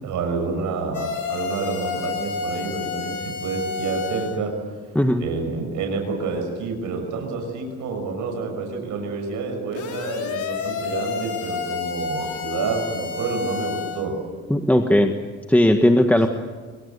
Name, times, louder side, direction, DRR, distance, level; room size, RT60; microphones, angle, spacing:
voice 1, 0.0-4.5 5.2-14.1, right 4 dB, 80° right, 3 dB, 6.3 m, -28 dB
sound 1, 0.9-4.4 9.7-14.0, left 5 dB, 75° left, 4.7 m, -30 dB
voice 2, 14.5-15.1 15.5-16.3, left 1 dB, 5° left, 5 dB, 1.6 m, -17 dB
24.5 x 24.0 x 8.3 m, 1.4 s
cardioid pair, 90°, 30 cm